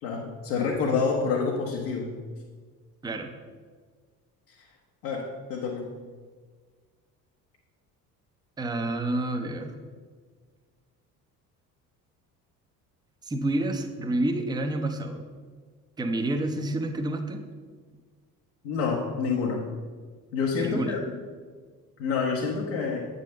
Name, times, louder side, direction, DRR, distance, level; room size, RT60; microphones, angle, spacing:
voice 1, 0.0-2.1 4.5-4.7 5.0-5.9 18.6-19.6 20.3-21.0 22.0-23.0, left 5 dB, 60° left, -1 dB, 1.1 m, -28 dB
voice 2, 8.6-9.7 13.2-15.2 16.0-17.4 20.6-20.9, right 1 dB, 10° right, 5 dB, 0.7 m, -29 dB
8.2 x 4.1 x 6.4 m, 1.5 s
figure-of-eight pair, 55°, 47 cm